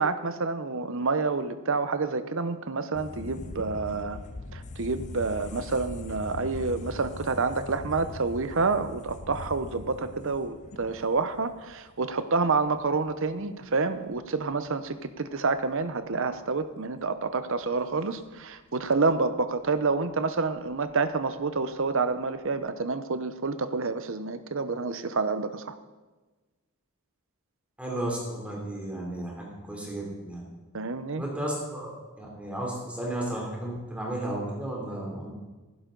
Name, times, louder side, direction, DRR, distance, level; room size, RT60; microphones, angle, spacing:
voice 1, 0.0-4.2 4.5-25.7 30.7-31.2, right 4 dB, 60° right, 11 dB, 0.8 m, -28 dB
sound 1, 2.9-13.4 13.8-13.9 14.1-14.9 15.5-16.2 16.4-16.5 17.0-17.1 17.8-17.9 18.6-18.8 19.4-19.5 19.7-19.8 20.1-20.6 20.9-21.0 21.4-21.5 21.8-21.9, left 2 dB, 35° left, 0.5 m, -41 dB
voice 2, 27.8-30.4 31.2-31.9 32.2-35.3, right 1 dB, 5° right, -3 dB, 3.2 m, -33 dB
15.0 x 12.0 x 3.9 m, 1.2 s
head